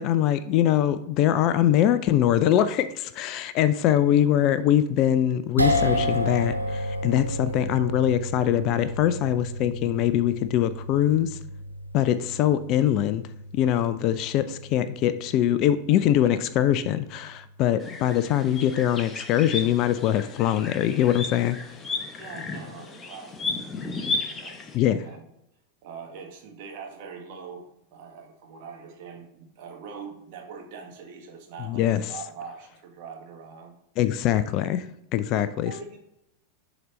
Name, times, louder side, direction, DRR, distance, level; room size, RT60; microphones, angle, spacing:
voice 1, 0.0-11.4 11.9-13.2 13.5-21.6 24.7-25.0 31.7-32.0 34.0-34.8 35.1-35.7, left 11 dB, 40° left, 13 dB, 0.4 m, -23 dB
sound 1, 5.6-17.9, equal, 85° right, 0.7 m, -32 dB
sound 2, 17.8-24.8, left 3 dB, 20° left, 0.9 m, -34 dB
voice 2, 21.9-25.3 25.8-33.7 35.3-36.0, right 5 dB, 45° right, 2 dB, 1.6 m, -43 dB
10.5 x 4.0 x 3.2 m, 0.80 s
figure-of-eight pair, 90°, 0 cm